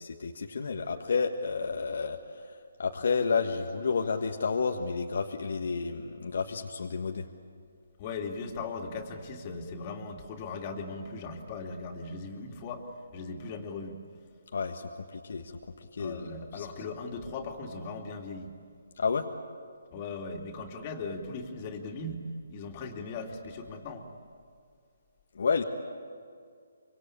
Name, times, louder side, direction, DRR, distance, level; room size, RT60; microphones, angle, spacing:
voice 1, 0.2-7.3 14.5-15.5 15.8-16.7 19.0-19.3 25.3-25.6, left 5 dB, 65° left, 4 dB, 1.5 m, -31 dB
voice 2, 8.0-14.0 16.0-18.6 19.9-22.2 22.5-24.1, left 3 dB, 35° left, 3 dB, 2.8 m, -38 dB
25.0 x 25.0 x 8.7 m, 2.2 s
figure-of-eight pair, 145°, 0 cm